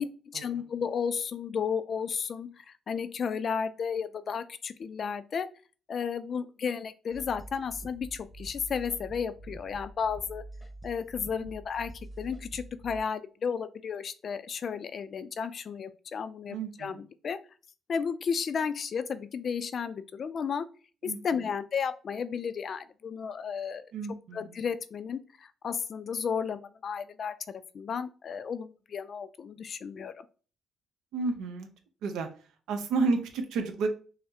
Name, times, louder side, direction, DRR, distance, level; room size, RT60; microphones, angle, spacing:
voice 1, 0.0-5.5 5.9-10.4 10.8-11.9 12.2-17.4 17.9-20.7 21.0-23.9 24.3-30.1, left 6 dB, 50° left, 12 dB, 0.4 m, -33 dB
sound 1, 7.1-13.0, right 2 dB, 10° right, 0.9 m, -46 dB
voice 2, 16.5-17.0 21.0-21.2 23.9-24.6 31.1-31.7 32.0-32.3 32.7-33.9, right 4 dB, 85° right, 6 dB, 0.6 m, -31 dB
5.6 x 2.0 x 2.7 m, 0.37 s
cardioid pair, 90°, 0 cm